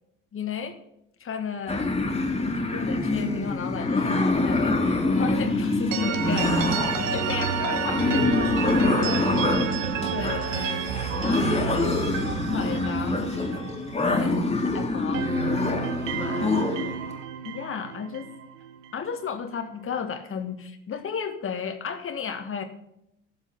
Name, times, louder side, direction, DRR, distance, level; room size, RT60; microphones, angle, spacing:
voice 1, 0.3-0.8 1.2-1.9 2.4-6.8 7.1-9.5 10.1-11.9 12.5-13.4 14.1-15.4 16.2-16.8 17.4-18.3 18.9-22.6, left 6 dB, 30° left, 7 dB, 1.6 m, -33 dB
sound 1, 1.7-17.0, left 2 dB, 15° left, 2.4 m, -25 dB
sound 2, 5.9-14.6 14.9-19.0, right 8 dB, 70° right, 1.0 m, -31 dB
14.5 x 7.2 x 5.1 m, 0.81 s
figure-of-eight pair, 55°, 39 cm